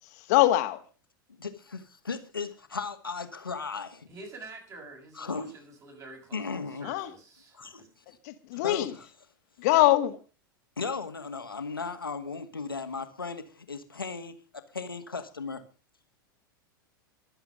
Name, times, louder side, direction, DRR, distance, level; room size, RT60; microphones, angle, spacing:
voice 1, 0.3-0.8 6.8-7.1 8.2-8.9 9.6-10.2, left 16 dB, 50° left, 2.0 m, -23 dB
voice 2, 1.4-4.1 5.1-5.5 6.3-6.9 7.5-8.2 8.5-9.1 10.8-15.6, left 4 dB, 80° left, 2.1 m, -36 dB
voice 3, 4.1-7.9, right 2 dB, 25° right, 7.3 m, -47 dB
24.0 x 8.1 x 5.3 m
figure-of-eight pair, 90°, 12 cm